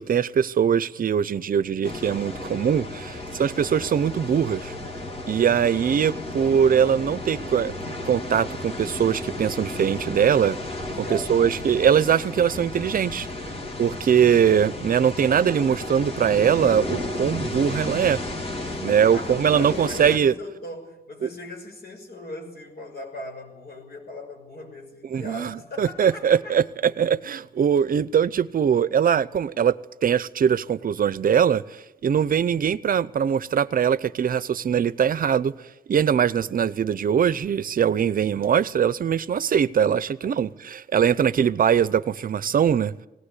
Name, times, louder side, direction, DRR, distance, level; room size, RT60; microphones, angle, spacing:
voice 1, 0.0-4.7 5.3-10.6 11.0-13.3 13.8-18.2 18.8-20.3 25.1-29.8 30.0-35.5 35.9-42.9, right 8 dB, 60° right, 0.7 m, -22 dB
sound 1, 1.8-20.2, left 2 dB, 35° left, 2.8 m, -33 dB
voice 2, 11.0-11.8 18.7-26.9 40.2-40.4, left 1 dB, 70° left, 6.2 m, -39 dB
19.0 x 18.5 x 9.9 m
wide cardioid pair, 140°, 17 cm